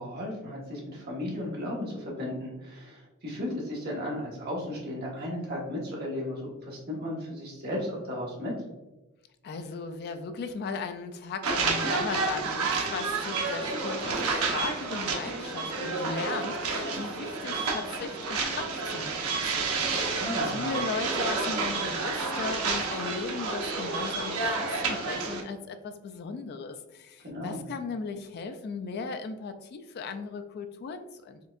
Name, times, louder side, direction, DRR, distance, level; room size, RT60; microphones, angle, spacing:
voice 1, 0.0-8.5 20.1-20.6 27.2-27.6, left 1 dB, 45° right, -3 dB, 1.2 m, -35 dB
voice 2, 9.4-20.2 20.5-31.4, left 4 dB, 45° left, 8 dB, 0.3 m, -37 dB
sound 1, 11.4-25.4, right 3 dB, 90° right, 0.8 m, -30 dB
4.4 x 3.4 x 2.4 m, 1.1 s
head